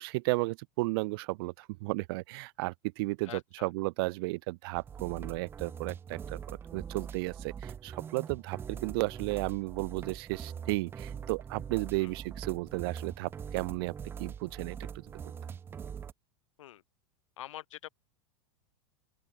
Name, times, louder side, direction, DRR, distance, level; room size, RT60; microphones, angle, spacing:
voice 1, 0.0-13.9 14.2-15.0, right 24 dB, 50° right, 2.2 m, -34 dB
voice 2, 3.3-3.7 12.0-12.1 16.6-16.8 17.4-17.9, left 13 dB, 85° left, 5.6 m, -45 dB
sound 1, 4.7-16.1, right 7 dB, 15° right, 1.0 m, -42 dB
open air
supercardioid pair, 165°, 16 cm